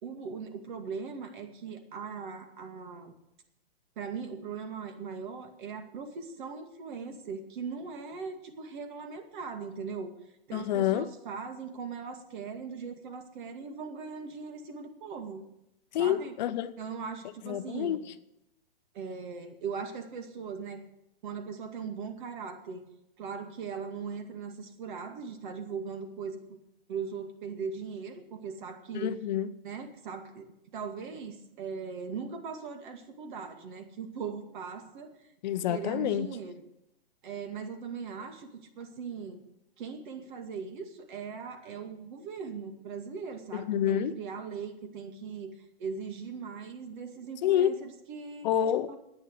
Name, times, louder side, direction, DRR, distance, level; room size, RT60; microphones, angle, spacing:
voice 1, 0.0-3.2 4.0-10.1 10.5-15.4 16.0-16.3 16.8-18.0 18.9-20.9 21.2-22.8 23.2-26.6 26.9-29.1 29.6-30.5 30.7-35.3 35.7-36.6 37.2-39.4 39.8-48.5 48.9-49.0, right 5 dB, 55° right, 2.2 m, -39 dB
voice 2, 10.5-11.1 15.9-16.7 17.4-18.0 28.9-29.5 35.4-36.3 43.5-44.1 47.4-47.8 48.4-48.9, left 10 dB, 50° left, 0.7 m, -28 dB
11.0 x 9.0 x 8.4 m
hypercardioid pair, 140°, 30 cm